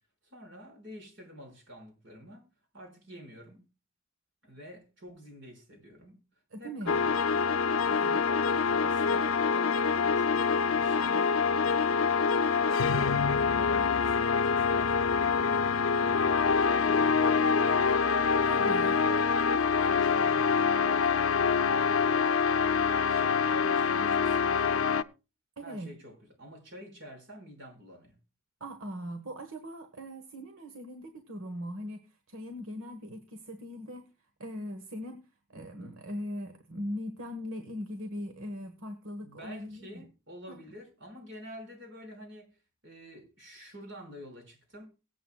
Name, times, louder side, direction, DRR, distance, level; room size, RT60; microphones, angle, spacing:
voice 1, 0.2-2.4 2.7-3.6 4.4-6.2 6.6-7.3 7.9-11.3 11.8-18.0 19.0-19.3 19.8-22.0 22.9-24.9 25.6-28.2 39.2-42.5 42.8-44.9, equal, 65° right, 5.5 m, -48 dB
voice 2, 6.5-7.0 11.0-11.3 18.4-19.0 25.6-25.9 28.6-34.1 34.4-35.2 35.5-40.0 40.5-40.6, equal, 90° right, 1.4 m, -40 dB
sound 1, 6.9-25.0, left 5 dB, 85° left, 0.5 m, -25 dB
23.5 x 8.1 x 2.3 m
head